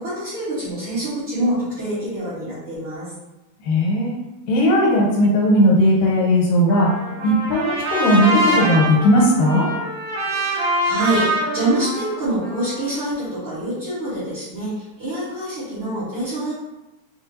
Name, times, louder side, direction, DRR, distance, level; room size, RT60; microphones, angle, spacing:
voice 1, 0.0-3.1 10.3-16.5, right 1 dB, 50° right, -12 dB, 1.8 m, -26 dB
voice 2, 3.6-4.1 4.5-6.9 7.2-9.6, equal, 85° left, -3 dB, 2.6 m, -17 dB
Trumpet, 6.7-12.9, right 1 dB, 75° right, 2.5 m, -24 dB
6.0 x 2.4 x 2.8 m, 0.99 s
omnidirectional pair, 3.8 m